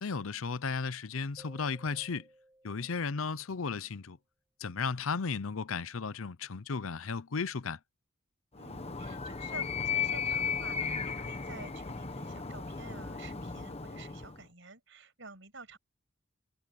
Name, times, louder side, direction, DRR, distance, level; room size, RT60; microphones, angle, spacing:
voice 1, 0.0-2.3 2.6-4.2 4.6-7.8, left 5 dB, 85° left, 0.7 m, -35 dB
sound 1, 1.4-3.6, right 1 dB, 15° right, 7.3 m, -59 dB
Animal, 8.6-14.4, left 6 dB, 30° left, 1.0 m, -35 dB
voice 2, 8.6-15.8, right 3 dB, 65° right, 7.1 m, -50 dB
head